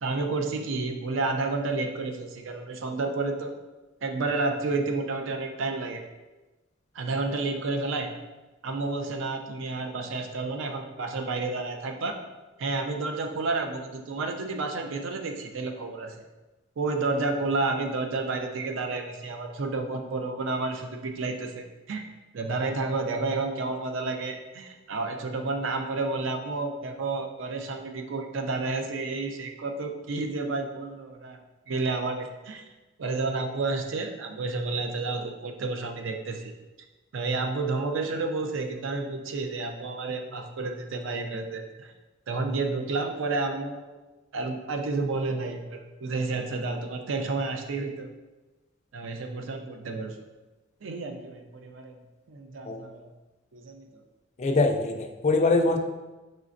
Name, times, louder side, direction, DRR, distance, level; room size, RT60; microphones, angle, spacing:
voice 1, 0.0-3.5 4.0-6.0 6.9-8.1 8.6-12.2 12.6-16.2 16.8-22.0 22.3-31.4 31.7-32.6 33.0-36.5 37.1-41.9 42.3-43.9 44.3-48.1 48.9-50.2 50.8-52.0 52.3-53.1 53.5-53.9, right 3 dB, 70° right, 5 dB, 0.4 m, -30 dB
voice 2, 54.4-55.8, left 3 dB, 35° left, 5 dB, 0.4 m, -23 dB
5.1 x 3.3 x 2.5 m, 1.1 s
head